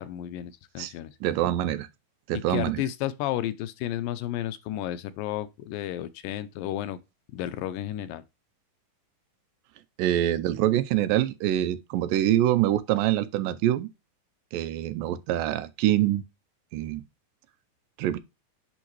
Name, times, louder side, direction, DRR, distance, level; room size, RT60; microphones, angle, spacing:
voice 1, 0.0-1.2 2.3-7.0 7.3-8.2, left 12 dB, 90° left, 2.4 m, -32 dB
voice 2, 1.2-1.9 2.3-2.8 10.0-13.9 14.5-16.2 16.7-17.0 18.0-18.2, right 13 dB, 90° right, 2.4 m, -25 dB
10.5 x 3.6 x 3.0 m
omnidirectional pair, 3.9 m